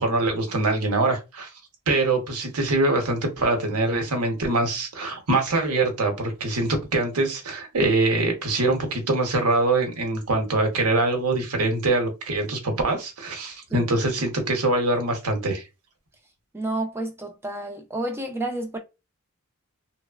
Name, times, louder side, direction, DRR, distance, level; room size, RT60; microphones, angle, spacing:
voice 1, 0.0-1.5 1.9-15.6, right 2 dB, 80° right, 0.8 m, -23 dB
voice 2, 16.5-18.8, right 2 dB, 10° right, 0.4 m, -30 dB
3.0 x 2.0 x 2.3 m
head